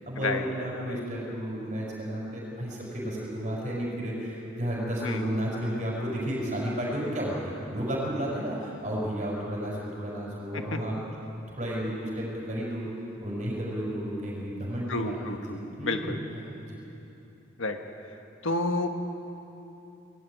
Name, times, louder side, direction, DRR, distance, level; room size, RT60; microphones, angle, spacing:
voice 1, 0.1-11.0 11.6-12.9 13.2-16.8, equal, 35° right, -5 dB, 6.0 m, -32 dB
voice 2, 14.9-16.2 17.6-17.8 18.4-18.9, left 2 dB, 75° left, 5 dB, 1.6 m, -30 dB
20.0 x 14.5 x 9.2 m, 3.0 s
head